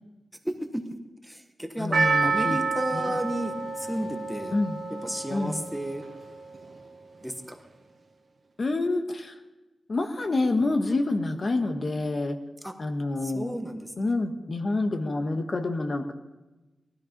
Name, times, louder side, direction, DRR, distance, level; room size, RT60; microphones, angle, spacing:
voice 1, 0.4-0.8 1.2-2.0 2.2-4.5 5.0-6.0 7.2-7.6 12.6-12.7 13.2-14.1, right 1 dB, 5° right, 5 dB, 1.2 m, -33 dB
voice 2, 1.8-2.6 2.9-3.2 4.5-4.8 5.3-5.6 8.6-9.3 9.9-12.3 12.8-13.5 14.0-16.1, left 2 dB, 40° left, 6 dB, 1.3 m, -27 dB
Percussion, 1.9-6.3 6.5-6.6, right 4 dB, 50° right, 1.7 m, -29 dB
19.5 x 13.0 x 5.3 m, 1.1 s
wide cardioid pair, 150°, 0 cm